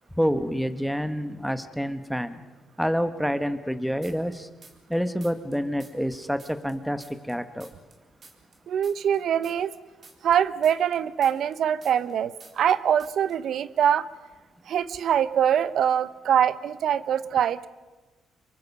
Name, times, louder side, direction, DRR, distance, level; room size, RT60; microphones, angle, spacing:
voice 1, 0.1-2.4 2.8-4.5 4.9-7.7, equal, ahead, 10 dB, 1.4 m, -28 dB
sound 1, 4.0-4.9 5.2-8.0 8.2-12.1 12.4-12.7 13.0-13.4, right 3 dB, 40° right, 3.6 m, -51 dB
voice 2, 8.7-9.7 10.2-14.1 14.7-17.7, right 9 dB, 70° right, 16 dB, 0.8 m, -23 dB
26.0 x 23.5 x 5.5 m, 1.2 s
cardioid pair, 90°, 0 cm